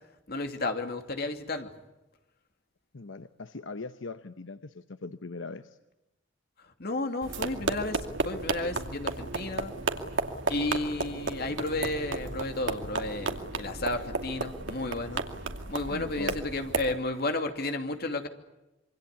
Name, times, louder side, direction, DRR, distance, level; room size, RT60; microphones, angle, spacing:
voice 1, 0.3-1.7 6.8-9.7 10.5-15.2 15.7-18.3, left 2 dB, 55° left, 6 dB, 2.7 m, -32 dB
voice 2, 2.9-5.8 15.9-16.4, left 3 dB, 85° left, 10 dB, 0.9 m, -40 dB
sound 1, 7.2-16.9, right 3 dB, 85° right, 2.5 m, -33 dB
26.5 x 24.5 x 8.4 m, 0.98 s
head